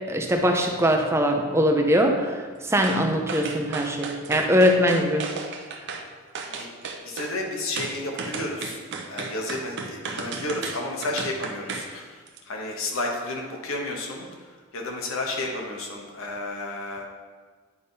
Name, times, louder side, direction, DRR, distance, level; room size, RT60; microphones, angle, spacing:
voice 1, 0.1-5.3, equal, 10° right, 3 dB, 0.5 m, -22 dB
sound 1, 2.8-3.0 3.3-6.0 6.3-7.3 7.8-11.9 12.3-12.4, right 4 dB, 50° right, 0.6 m, -34 dB
voice 2, 7.0-8.8 9.1-14.2 14.7-17.1, left 2 dB, 65° left, 0 dB, 1.1 m, -32 dB
9.5 x 3.6 x 4.1 m, 1.5 s
head